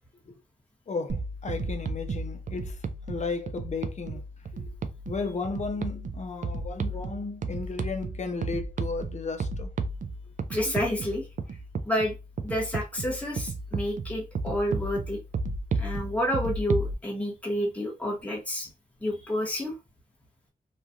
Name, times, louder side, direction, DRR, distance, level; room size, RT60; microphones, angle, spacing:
voice 1, 0.9-2.8 3.1-4.2 4.5-4.7 5.1-9.7, left 4 dB, 55° left, 0.5 m, -34 dB
sound 1, 1.1-16.9, right 3 dB, 65° right, 0.4 m, -34 dB
voice 2, 10.5-11.3 11.8-12.2 12.4-15.2 15.8-18.7 19.0-19.7, left 1 dB, 10° left, 1.1 m, -29 dB
3.0 x 2.3 x 2.5 m
wide cardioid pair, 95°, 15 cm